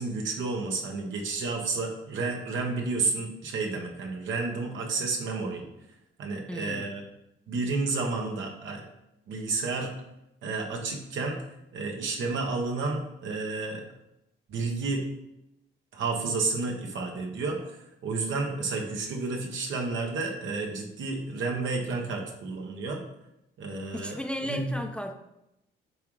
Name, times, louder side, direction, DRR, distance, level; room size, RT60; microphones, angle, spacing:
voice 1, 0.0-5.6 6.2-7.0 7.5-8.8 9.3-9.9 10.4-11.4 11.7-13.8 14.5-15.0 15.9-17.8 18.0-23.0 23.6-24.2 24.5-24.7, right 3 dB, 75° right, 1 dB, 1.3 m, -31 dB
voice 2, 6.5-6.9 23.9-25.1, equal, 5° left, 5 dB, 0.6 m, -34 dB
7.7 x 3.8 x 3.2 m, 0.86 s
cardioid pair, 90°, 20 cm